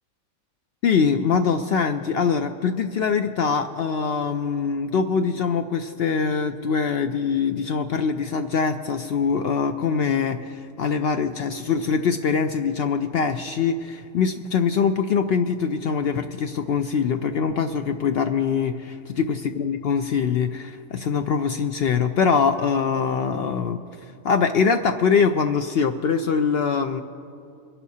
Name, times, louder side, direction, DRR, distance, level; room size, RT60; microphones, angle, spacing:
voice 1, 0.8-23.8 24.2-27.0, left 6 dB, 70° left, 7 dB, 0.5 m, -23 dB
23.5 x 11.0 x 2.8 m, 2.5 s
omnidirectional pair, 1.5 m